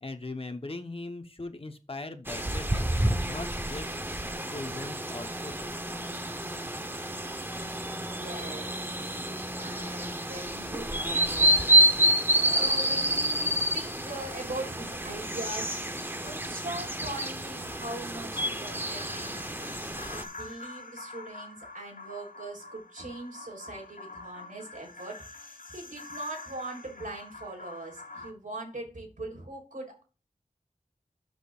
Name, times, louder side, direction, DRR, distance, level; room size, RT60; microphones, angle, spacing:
voice 1, 0.0-3.9 4.2-5.8, left 2 dB, 40° left, 7 dB, 1.1 m, -40 dB
sound 1, 2.3-20.2, right 1 dB, 15° right, 1.0 m, -28 dB
voice 2, 7.9-8.8 9.6-11.6 12.4-19.7 20.1-30.0, right 2 dB, 75° right, 0 dB, 3.9 m, -41 dB
sound 2, 18.3-28.3, left 3 dB, 85° left, 1.0 m, -46 dB
12.5 x 6.1 x 2.5 m, 0.33 s
wide cardioid pair, 60°, 14 cm